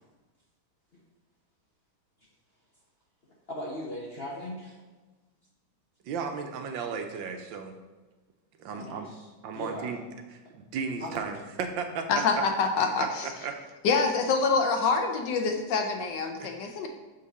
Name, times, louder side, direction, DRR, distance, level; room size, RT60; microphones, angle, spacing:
voice 1, 3.5-4.8 8.7-9.3 9.5-9.9 11.0-11.2, equal, 50° left, -3 dB, 0.7 m, -38 dB
voice 2, 6.0-7.8 8.6-9.1 9.4-10.0 10.5-12.2 13.0-13.1 13.4-13.6 16.4-16.5, right 5 dB, 75° right, 6 dB, 1.4 m, -34 dB
voice 3, 12.1-13.3 13.8-16.9, left 4 dB, 70° left, 4 dB, 1.3 m, -26 dB
6.5 x 5.3 x 4.0 m, 1.2 s
omnidirectional pair, 2.2 m